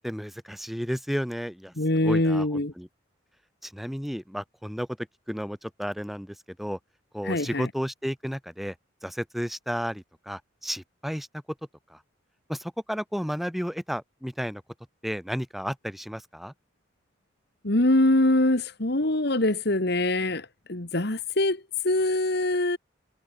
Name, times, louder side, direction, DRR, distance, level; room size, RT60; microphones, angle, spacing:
voice 1, 0.0-1.7 2.0-2.9 3.6-6.8 7.1-8.7 9.0-11.3 11.9-12.0 12.5-14.6 15.0-16.5, equal, ahead, 7.6 m, -33 dB
voice 2, 1.8-2.7 7.2-7.7 17.6-22.8, left 1 dB, 55° left, 2.0 m, -24 dB
head